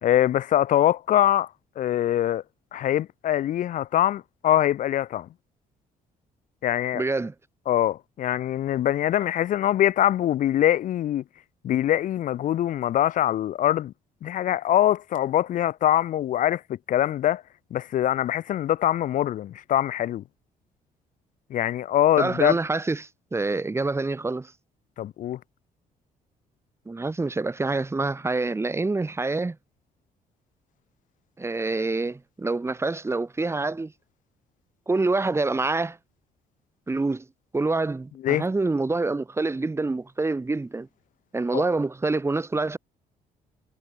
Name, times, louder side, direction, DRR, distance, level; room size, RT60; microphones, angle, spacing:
voice 1, 0.0-1.5 1.8-2.4 2.7-5.3 6.6-7.0 7.7-11.2 11.6-13.9 14.2-16.6 16.9-17.4 17.7-20.2 21.5-22.6 25.0-25.4 38.2-38.5 41.5-41.6, left 12 dB, 60° left, 0.6 m, -23 dB
voice 2, 6.9-7.3 22.2-24.5 26.9-29.6 31.4-33.9 34.9-36.0 36.9-37.2 37.5-40.9 41.3-42.8, right 3 dB, 15° right, 2.2 m, -26 dB
cardioid pair, 110°, 15 cm